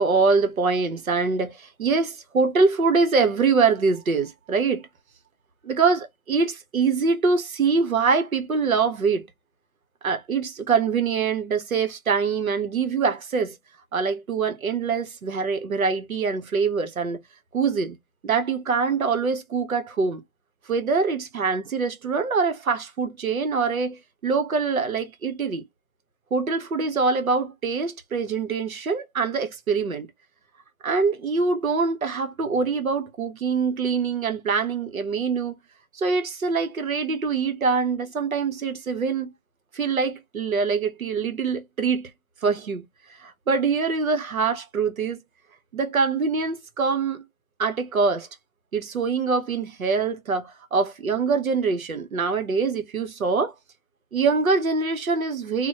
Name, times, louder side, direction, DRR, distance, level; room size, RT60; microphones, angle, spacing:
voice 1, 0.0-4.9 5.6-9.3 10.0-13.6 13.9-17.2 17.5-18.0 18.2-20.2 20.7-25.6 26.3-30.1 30.8-35.5 35.9-39.3 39.7-42.1 42.4-42.9 43.2-45.2 45.7-47.2 47.6-48.3 48.7-53.5 54.1-55.7, right 4 dB, 70° right, 0.9 m, -24 dB
2.9 x 2.2 x 2.8 m
figure-of-eight pair, 160°, 43 cm